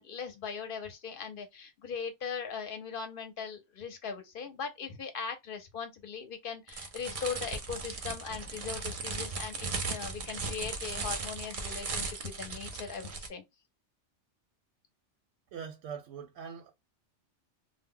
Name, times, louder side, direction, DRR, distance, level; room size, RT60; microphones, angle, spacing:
voice 1, 0.0-13.4, left 6 dB, 55° left, 0.7 m, -39 dB
sound 1, 6.7-13.3, right 4 dB, 50° right, 0.4 m, -37 dB
voice 2, 15.5-16.7, right 7 dB, 85° right, 0.9 m, -42 dB
2.1 x 2.1 x 3.6 m
omnidirectional pair, 1.2 m